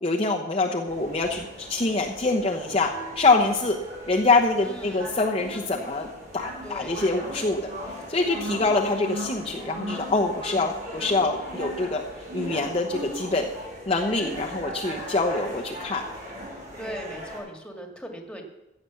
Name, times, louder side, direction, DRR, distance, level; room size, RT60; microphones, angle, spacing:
voice 1, 0.0-3.8 4.1-6.1 6.3-7.7 8.1-12.0 12.3-13.5 13.9-16.0, left 3 dB, 30° left, -1 dB, 1.0 m, -25 dB
sound 1, 0.9-17.4, equal, 40° right, 5.9 m, -38 dB
voice 2, 4.6-5.1 6.6-7.0 16.8-18.4, equal, 5° left, 3 dB, 2.0 m, -39 dB
15.0 x 8.0 x 7.1 m, 0.98 s
head